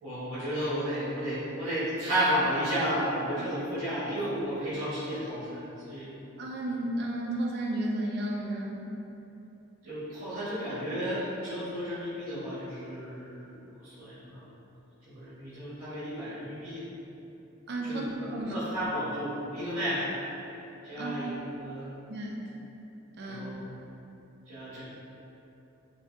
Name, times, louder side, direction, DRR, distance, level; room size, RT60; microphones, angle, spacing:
voice 1, 0.0-6.1 9.8-14.4 15.0-16.8 17.8-20.1 20.8-21.9 23.2-23.6 24.5-24.8, equal, 90° right, -13 dB, 1.0 m, -33 dB
voice 2, 6.4-8.9 17.7-18.6 21.0-21.2 22.1-22.4 23.2-23.4, right 1 dB, 50° right, -1 dB, 0.4 m, -33 dB
3.3 x 2.6 x 2.6 m, 2.9 s
head